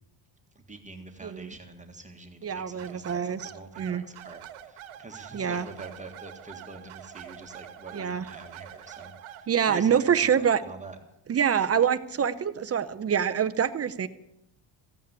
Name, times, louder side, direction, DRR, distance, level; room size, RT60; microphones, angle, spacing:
voice 1, 0.5-11.0, right 3 dB, 15° right, 4 dB, 1.7 m, -45 dB
voice 2, 2.4-3.5 3.8-4.0 5.3-5.7 7.9-8.2 9.5-10.6 11.3-14.1, right 8 dB, 30° right, 10 dB, 0.7 m, -25 dB
sound 1, 2.8-9.5, right 11 dB, 85° right, 1.4 m, -45 dB
15.0 x 9.2 x 8.3 m, 0.84 s
cardioid pair, 125°, 48 cm